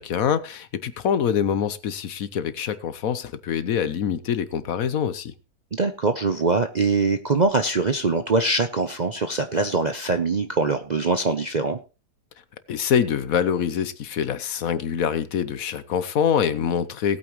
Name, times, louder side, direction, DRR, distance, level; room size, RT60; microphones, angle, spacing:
voice 1, 0.0-5.3 12.7-17.2, left 8 dB, 65° left, 1.2 m, -25 dB
voice 2, 5.7-11.8, right 3 dB, 45° right, 0.6 m, -23 dB
18.5 x 8.7 x 3.1 m
omnidirectional pair, 1.7 m